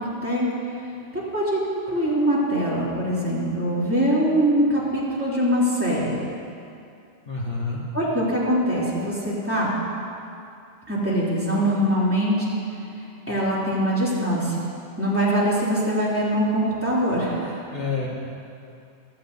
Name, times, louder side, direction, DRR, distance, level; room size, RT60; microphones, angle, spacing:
voice 1, 1.1-6.1 7.9-9.7 10.9-12.5 13.3-14.6 15.0-17.7, equal, 10° right, -9 dB, 3.1 m, -23 dB
voice 2, 7.2-7.8 17.7-18.1, left 4 dB, 50° left, -5 dB, 1.6 m, -28 dB
15.5 x 14.0 x 2.7 m, 2.5 s
omnidirectional pair, 1.3 m